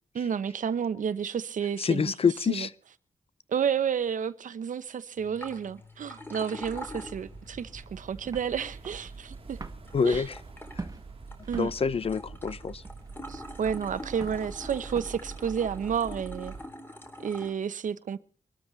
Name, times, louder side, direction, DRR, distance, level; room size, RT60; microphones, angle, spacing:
voice 1, 0.1-2.1 2.5-2.7 3.5-9.6 10.0-10.2 11.5-11.7 13.3-16.5 17.2-18.2, right 7 dB, 85° right, 1.0 m, -31 dB
voice 2, 1.8-2.7 9.9-10.4 11.6-12.8, left 5 dB, 50° left, 0.8 m, -26 dB
sound 1, 5.2-17.5, left 1 dB, 15° left, 3.7 m, -46 dB
sound 2, 6.6-16.7, right 4 dB, 45° right, 1.7 m, -45 dB
sound 3, 7.8-15.3, right 3 dB, 25° right, 1.5 m, -45 dB
24.0 x 13.0 x 4.1 m
wide cardioid pair, 120°, 13 cm